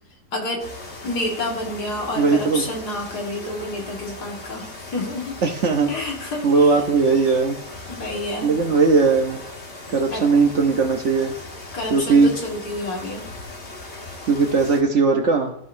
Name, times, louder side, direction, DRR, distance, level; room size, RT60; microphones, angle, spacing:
voice 1, 0.3-0.7 1.0-5.4 5.9-6.5 7.9-8.6 10.1-10.3 11.7-13.3, left 1 dB, 70° left, -1 dB, 2.4 m, -29 dB
sound 1, 0.6-14.8, left 2 dB, 40° left, 1.8 m, -38 dB
voice 2, 2.2-2.6 5.4-5.9 6.4-7.6 8.4-9.4 9.9-11.4 11.9-12.3 14.3-15.5, right 4 dB, 55° right, 3 dB, 0.9 m, -18 dB
14.5 x 5.2 x 2.6 m, 0.78 s
omnidirectional pair, 1.8 m